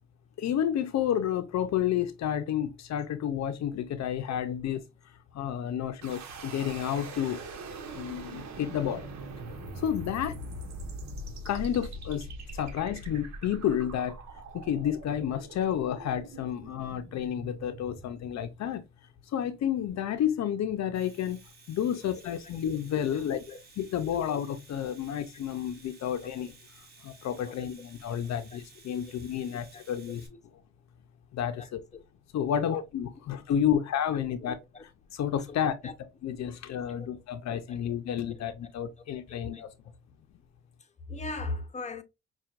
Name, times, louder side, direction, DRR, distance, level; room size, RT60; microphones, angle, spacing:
voice 1, 0.4-4.8 5.3-7.4 7.9-9.1 9.7-10.4 11.4-12.3 12.5-14.2 14.5-18.8 19.3-21.4 21.7-23.4 23.8-26.5 27.0-30.2 31.3-31.8 32.3-35.8 36.2-39.7, left 9 dB, 60° left, 0.6 m, -30 dB
sound 1, 6.0-19.0, right 2 dB, 65° right, 1.1 m, -42 dB
Domestic sounds home sounds, 20.8-30.3, right 3 dB, 30° right, 1.5 m, -56 dB
voice 2, 23.1-23.6 27.5-27.6 29.5-29.8 30.1-30.2 31.6-31.7 31.9-32.0 32.6-32.7 34.4-34.8 35.5-35.6 35.8-35.9 37.0-37.1 39.3-39.6 41.1-42.0, left 3 dB, 25° left, 0.7 m, -39 dB
5.7 x 2.4 x 2.4 m
cardioid pair, 90°, 30 cm